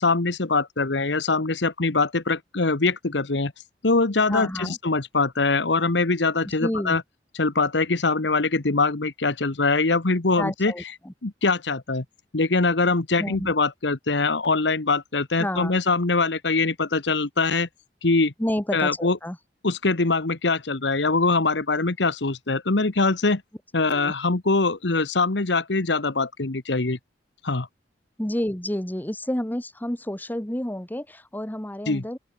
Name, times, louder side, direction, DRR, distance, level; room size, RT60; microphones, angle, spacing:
voice 1, 0.0-3.5 3.8-7.0 7.3-10.7 11.2-12.0 12.3-17.7 18.0-18.3 18.7-19.2 19.6-23.4 23.7-27.0 27.4-27.7 31.9-32.0, left 3 dB, 80° left, 1.3 m, -23 dB
voice 2, 4.3-4.8 6.4-7.0 10.4-11.1 13.2-13.5 15.4-15.8 18.4-19.4 23.9-24.1 28.2-32.2, left 1 dB, 10° left, 1.1 m, -30 dB
open air
head